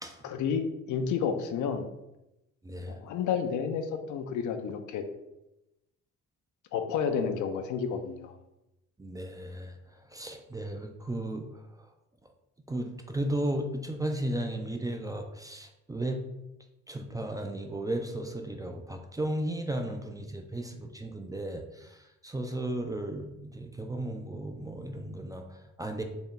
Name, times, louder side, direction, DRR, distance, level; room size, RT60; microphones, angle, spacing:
voice 1, 0.2-1.9 2.9-5.0 6.7-8.3, left 6 dB, 75° left, 7 dB, 0.5 m, -31 dB
voice 2, 2.6-3.0 9.0-9.8 10.1-11.9 12.7-16.2 16.9-26.0, right 1 dB, 10° right, 4 dB, 0.4 m, -35 dB
3.9 x 2.3 x 3.7 m, 0.91 s
cardioid pair, 90°, 30 cm